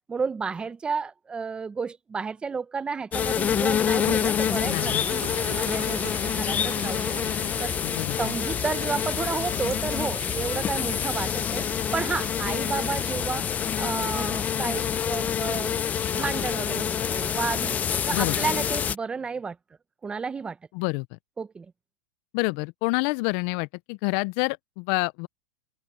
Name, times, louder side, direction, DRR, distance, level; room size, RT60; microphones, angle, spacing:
voice 1, 0.1-5.2 5.5-7.7 8.2-11.7 11.9-15.8 16.1-19.6 20.0-20.6 21.4-21.7, right 5 dB, 10° right, 0.8 m, -32 dB
sound 1, 3.1-19.0, left 8 dB, 20° left, 0.7 m, -27 dB
sound 2, 4.0-14.2, right 16 dB, 70° right, 2.4 m, -42 dB
voice 2, 4.6-5.3 7.8-8.3 18.1-18.4 20.7-21.1 22.3-25.3, left 27 dB, 45° left, 0.4 m, -28 dB
supercardioid pair, 140°, 8 cm